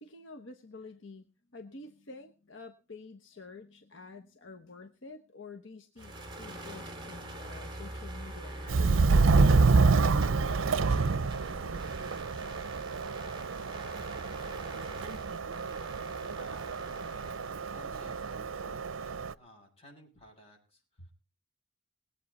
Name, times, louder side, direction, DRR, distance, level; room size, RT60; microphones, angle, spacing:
voice 1, 0.0-9.4 21.0-21.1, left 3 dB, 65° left, 5 dB, 1.2 m, -49 dB
sound 1, 6.0-18.8, right 1 dB, 25° right, 2.6 m, -44 dB
Subway metro underground, 8.7-19.3, right 4 dB, 85° right, 0.6 m, -28 dB
voice 2, 16.4-17.2 17.7-21.1, equal, 30° left, 0 dB, 7.3 m, -56 dB
21.0 x 8.5 x 4.3 m, 0.34 s
head